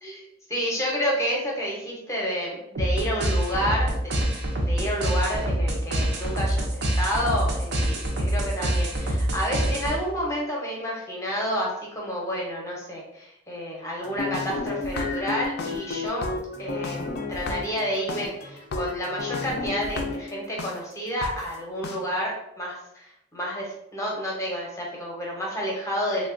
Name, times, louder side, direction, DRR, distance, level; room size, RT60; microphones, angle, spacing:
voice 1, 0.5-16.3 16.6-26.3, equal, 15° left, -3 dB, 0.7 m, -30 dB
sound 1, 2.8-10.2, right 1 dB, 55° right, 0.5 m, -26 dB
sound 2, 14.0-20.7 21.2-21.3 21.8-22.0, left 3 dB, 50° left, 0.3 m, -32 dB
3.3 x 2.2 x 2.5 m, 0.80 s
head